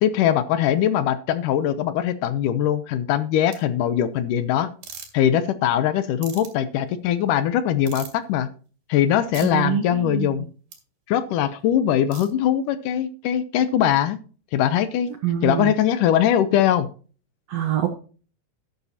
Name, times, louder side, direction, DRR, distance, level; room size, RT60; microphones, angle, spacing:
voice 1, 0.0-4.7 5.1-8.5 8.9-10.5 11.1-14.2 14.5-15.1 15.4-16.9, left 10 dB, 75° left, 13 dB, 2.1 m, -21 dB
sound 1, 3.5-3.6 4.8-5.1 6.2-6.5 7.9-8.2 9.3-9.5 10.7-10.8 12.1-12.3, right 7 dB, 90° right, 4.0 m, -38 dB
voice 2, 9.4-10.5 15.2-15.7 17.5-17.9, right 10 dB, 70° right, 6 dB, 1.7 m, -25 dB
12.0 x 11.0 x 2.8 m, 0.38 s
omnidirectional pair, 4.0 m